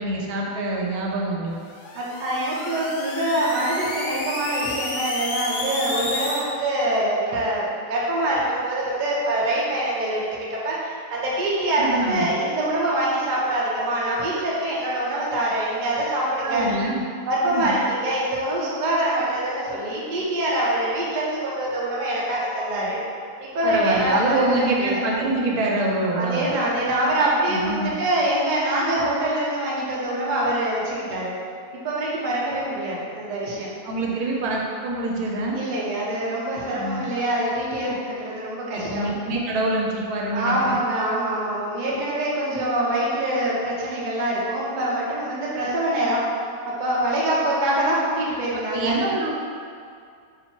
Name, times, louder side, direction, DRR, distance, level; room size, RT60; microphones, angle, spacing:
voice 1, 0.0-1.6 11.8-12.3 16.4-17.0 17.5-17.7 23.6-26.5 27.5-27.9 33.8-35.6 36.7-37.0 38.7-40.8 48.7-49.3, right 2 dB, 85° right, -2 dB, 1.1 m, -25 dB
sound 1, 1.6-6.4, left 2 dB, 65° left, 0.8 m, -31 dB
voice 2, 1.9-16.7 17.3-23.0 23.4-25.0 26.1-31.3 31.7-33.7 35.5-39.1 40.3-46.3 46.7-49.0, right 1 dB, 50° right, -5 dB, 0.6 m, -24 dB
2.9 x 2.6 x 4.3 m, 2.3 s
omnidirectional pair, 1.6 m